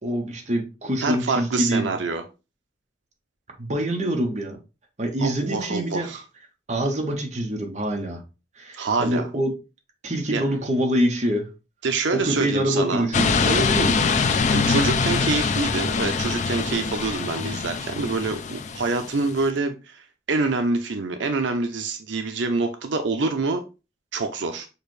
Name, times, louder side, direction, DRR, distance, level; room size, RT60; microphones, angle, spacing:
voice 1, 0.0-1.9 3.6-4.6 5.0-6.1 6.7-8.2 8.6-9.5 10.0-11.5 12.1-14.3, equal, 40° right, 1.2 m, -25 dB
voice 2, 1.0-2.2 5.2-6.2 8.7-9.3 10.3-10.4 11.8-13.1 14.5-20.0 20.3-23.6 24.1-24.7, right 3 dB, 85° right, 0.6 m, -26 dB
sound 1, 13.1-19.4, left 5 dB, 40° left, 0.4 m, -24 dB
6.6 x 2.5 x 3.3 m
head